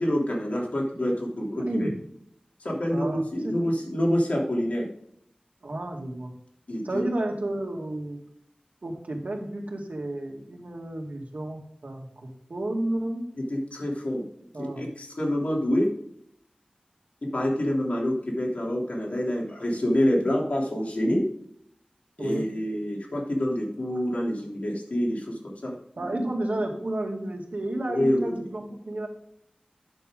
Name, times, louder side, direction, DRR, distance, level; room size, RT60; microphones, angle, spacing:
voice 1, 0.0-1.9 2.6-4.8 6.7-7.0 13.5-14.2 14.6-15.9 17.3-21.3 22.2-25.7 26.1-26.3 27.9-28.4, equal, 60° left, -2 dB, 3.0 m, -27 dB
voice 2, 1.5-1.9 2.9-3.6 5.6-6.3 6.8-8.2 8.8-13.2 14.5-14.9 22.2-22.5 26.0-29.1, right 1 dB, 70° right, 1 dB, 2.1 m, -31 dB
9.0 x 7.1 x 3.7 m, 0.70 s
wide cardioid pair, 65°, 3 cm